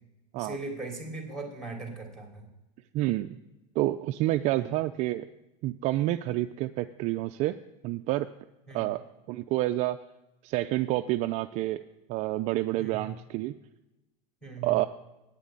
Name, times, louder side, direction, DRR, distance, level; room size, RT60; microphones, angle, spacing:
voice 1, 0.3-2.5 4.5-4.6 8.7-8.8 12.8-13.1 14.4-14.7, right 3 dB, 5° left, 1 dB, 2.9 m, -39 dB
voice 2, 2.9-3.4 3.8-5.3 5.6-7.6 7.8-8.3 8.7-9.0 9.3-10.0 10.4-11.8 12.1-13.5 14.6-14.9, right 16 dB, 40° right, 9 dB, 0.4 m, -28 dB
9.0 x 7.5 x 8.6 m, 1.0 s
supercardioid pair, 140°, 17 cm